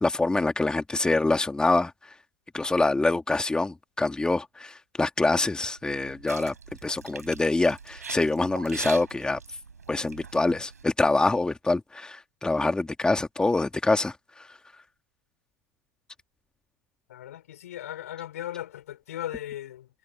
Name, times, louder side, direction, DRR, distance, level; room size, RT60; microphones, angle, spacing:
voice 1, 0.0-2.1 2.5-6.5 6.8-9.4 9.9-14.5, left 2 dB, 10° left, 2.5 m, -25 dB
sound 1, 5.8-10.8, right 5 dB, 80° right, 6.1 m, -42 dB
voice 2, 17.1-19.9, left 12 dB, 65° left, 5.1 m, -37 dB
figure-of-eight pair, 75°, 9 cm